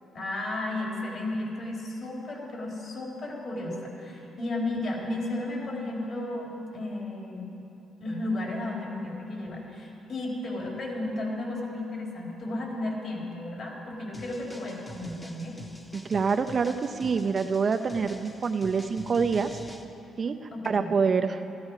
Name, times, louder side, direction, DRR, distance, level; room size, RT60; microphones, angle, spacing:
voice 1, 0.1-7.5 8.0-15.6 20.5-20.9, left 2 dB, 55° left, -3 dB, 4.1 m, -33 dB
sound 1, 14.1-19.8, left 1 dB, 15° left, 1.1 m, -45 dB
voice 2, 15.9-19.5 20.2-20.4 20.7-21.5, right 5 dB, 45° right, 8 dB, 0.6 m, -26 dB
14.5 x 14.0 x 4.9 m, 3.0 s
cardioid pair, 90°, 0 cm